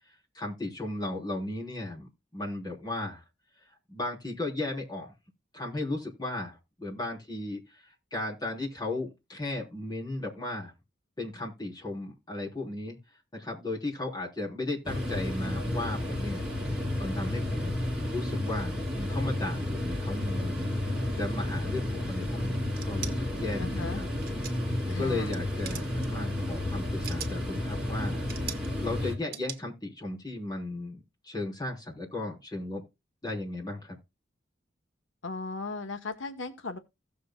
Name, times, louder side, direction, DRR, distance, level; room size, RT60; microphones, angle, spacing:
voice 1, 0.3-3.2 3.9-5.1 5.5-10.7 11.2-13.0 13.3-16.4 17.0-17.8 18.1-20.7 21.2-24.1 24.9-28.2 28.8-32.8 33.2-34.0, left 2 dB, 20° left, 3.4 m, -35 dB
sound 1, 14.8-29.1, left 1 dB, 5° right, 2.8 m, -31 dB
sound 2, 22.7-23.1 24.2-24.7 25.1-25.4 25.6-26.1 26.8-27.4 28.3-28.7 29.3-29.6, right 9 dB, 50° right, 1.3 m, -39 dB
voice 2, 23.6-24.0 24.9-25.4 35.2-36.8, left 3 dB, 75° left, 1.0 m, -37 dB
17.0 x 6.8 x 2.2 m
head